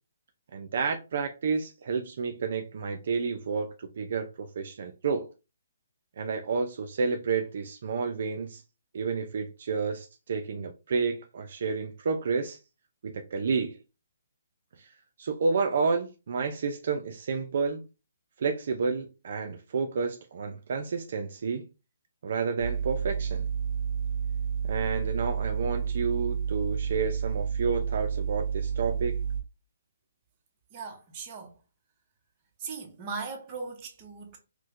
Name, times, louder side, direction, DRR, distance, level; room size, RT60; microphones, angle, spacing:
voice 1, 0.5-5.3 6.2-8.6 8.9-12.6 13.0-13.8 14.8-14.9 15.2-17.8 18.4-21.6 22.2-23.5 24.7-29.2, right 5 dB, 50° right, 0.4 m, -30 dB
sound 1, 22.6-29.4, right 7 dB, 10° left, 0.9 m, -30 dB
voice 2, 30.7-31.6 32.6-34.4, right 4 dB, 20° right, 0.7 m, -38 dB
4.4 x 2.1 x 2.4 m
hypercardioid pair, 170°, 0 cm